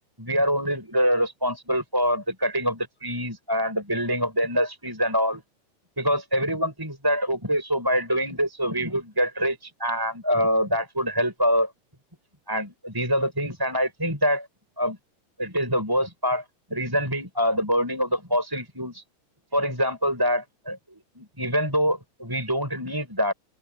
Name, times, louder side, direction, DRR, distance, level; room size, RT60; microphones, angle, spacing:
voice 1, 0.2-5.4 6.0-9.5 9.8-11.7 12.5-14.5 14.8-15.0 15.4-16.4 16.7-19.0 19.5-23.3, equal, 5° right, 6.9 m, -25 dB
open air
omnidirectional pair, 3.6 m